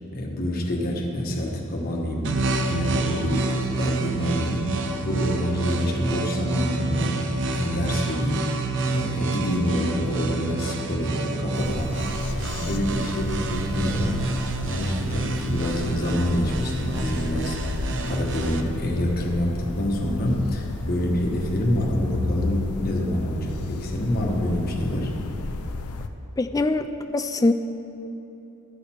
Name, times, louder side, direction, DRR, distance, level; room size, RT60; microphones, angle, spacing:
voice 1, 0.1-2.3 2.7-4.7 5.0-7.2 7.5-8.5 8.9-14.2 14.6-25.1, left 1 dB, 45° left, -1 dB, 1.2 m, -27 dB
sound 1, 2.2-18.6, right 3 dB, 60° right, 0.6 m, -28 dB
sound 2, 11.5-26.1, left 2 dB, 80° left, 0.5 m, -33 dB
voice 2, 26.4-26.9 27.1-27.5, left 2 dB, 15° left, 9 dB, 0.3 m, -22 dB
12.0 x 6.7 x 4.4 m, 2.9 s
head